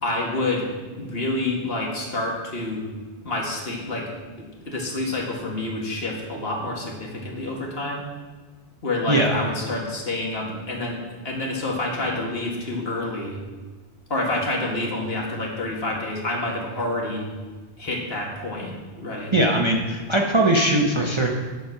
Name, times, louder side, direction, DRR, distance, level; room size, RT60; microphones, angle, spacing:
voice 1, 0.0-0.7 1.0-2.8 3.2-4.1 4.4-8.1 8.8-13.4 14.1-17.3 17.8-19.3, left 2 dB, 60° left, -1 dB, 2.0 m, -28 dB
voice 2, 9.1-9.4 19.3-21.3, right 1 dB, 30° right, 0 dB, 0.9 m, -20 dB
8.0 x 7.6 x 5.8 m, 1.4 s
omnidirectional pair, 1.2 m